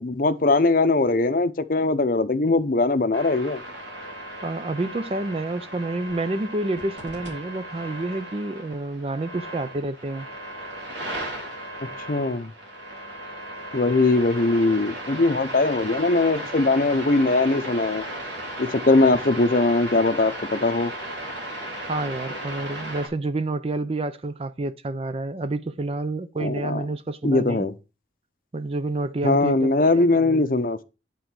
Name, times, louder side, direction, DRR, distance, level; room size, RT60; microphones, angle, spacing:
voice 1, 0.0-3.6 12.1-12.5 13.7-18.0 18.6-20.9 26.4-26.8 27.2-27.7 29.2-30.8, left 2 dB, 50° left, 0.7 m, -21 dB
sound 1, 3.1-23.1, right 1 dB, 80° right, 3.1 m, -36 dB
voice 2, 4.4-10.3 21.9-27.7 28.5-30.4, right 2 dB, 30° right, 0.4 m, -29 dB
9.2 x 3.8 x 6.0 m
head